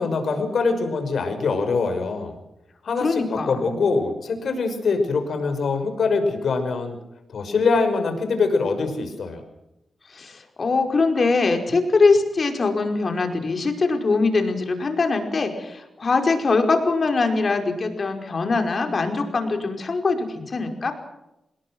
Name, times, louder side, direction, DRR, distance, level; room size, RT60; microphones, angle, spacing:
voice 1, 0.0-2.3 2.8-7.0 7.3-9.4, left 4 dB, 70° left, 7 dB, 5.9 m, -23 dB
voice 2, 3.0-3.6 10.1-20.9, left 3 dB, 50° left, 5 dB, 5.1 m, -22 dB
27.5 x 21.0 x 6.3 m, 0.90 s
cardioid pair, 75°, 0 cm